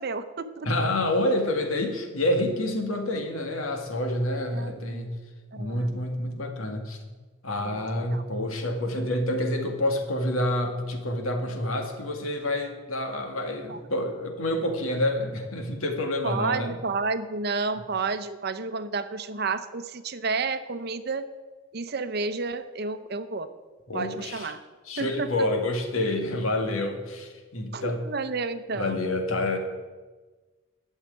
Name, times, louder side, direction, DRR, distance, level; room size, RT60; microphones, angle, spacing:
voice 1, 0.0-0.7 4.4-5.0 5.6-5.9 7.7-7.8 8.1-8.2 13.7-13.8 16.2-21.3 21.7-23.5 23.9-24.6 25.0-25.3 27.7-29.0, right 4 dB, 50° right, 11 dB, 0.7 m, -31 dB
voice 2, 0.6-5.1 5.5-7.0 7.4-16.7 23.9-24.5 24.8-28.1 28.7-29.6, left 1 dB, 85° left, 4 dB, 2.0 m, -28 dB
12.0 x 6.6 x 9.5 m, 1.3 s
head